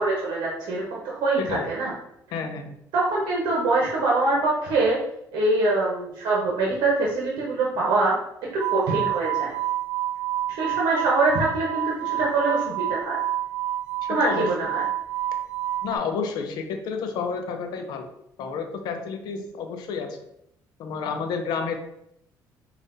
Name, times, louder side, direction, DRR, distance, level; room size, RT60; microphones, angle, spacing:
voice 1, 0.0-1.9 2.9-5.0 5.3-8.1 8.7-9.5 10.6-11.8 12.2-13.2 14.1-14.8, right 2 dB, 80° right, -4 dB, 0.9 m, -24 dB
voice 2, 1.4-1.7 2.3-2.7 14.0-14.5 15.8-18.1 18.4-20.2 20.8-21.8, left 5 dB, 70° left, 6 dB, 0.5 m, -30 dB
sound 1, 8.6-16.0, right 13 dB, 35° right, 0.5 m, -28 dB
5.4 x 2.4 x 2.6 m, 0.77 s
cardioid pair, 125°, 7 cm